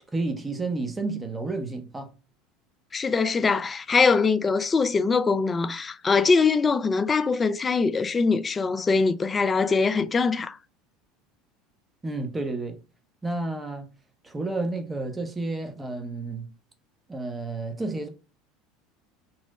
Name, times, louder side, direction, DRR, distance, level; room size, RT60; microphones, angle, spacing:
voice 1, 0.1-2.1 12.0-12.8 13.2-13.9 14.2-16.5 17.1-18.1, right 2 dB, 15° right, 0.7 m, -31 dB
voice 2, 2.9-10.6, left 4 dB, 25° left, 0.3 m, -22 dB
3.0 x 2.0 x 3.4 m
hypercardioid pair, 80°, 0 cm